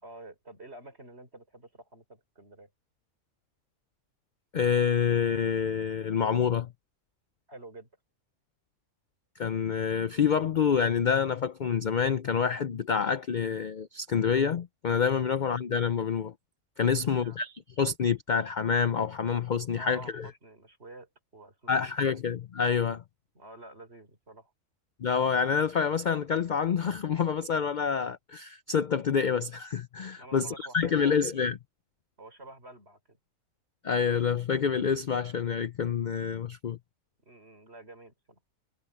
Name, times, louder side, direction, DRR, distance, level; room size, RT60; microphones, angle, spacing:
voice 1, 0.0-2.7 7.5-7.9 15.3-15.4 17.1-17.4 19.7-21.8 22.1-22.2 23.3-24.5 30.1-31.2 32.2-33.2 37.3-38.4, right 2 dB, 50° right, 5.5 m, -49 dB
voice 2, 4.5-6.7 9.4-16.3 16.8-20.3 21.7-23.0 25.0-31.6 33.8-36.8, left 6 dB, 50° left, 0.5 m, -27 dB
omnidirectional pair, 1.4 m